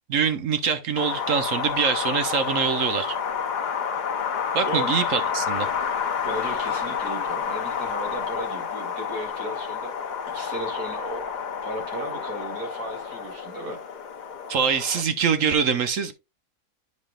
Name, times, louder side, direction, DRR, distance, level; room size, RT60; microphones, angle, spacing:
voice 1, 0.1-3.2 4.5-5.7 14.5-16.1, right 6 dB, 60° right, 1.0 m, -24 dB
Wind, 1.0-15.0, left 7 dB, 55° left, 0.5 m, -29 dB
voice 2, 6.2-9.9 10.3-11.2 11.6-13.8, right 1 dB, 80° right, 2.9 m, -35 dB
9.6 x 5.2 x 2.3 m
omnidirectional pair, 1.6 m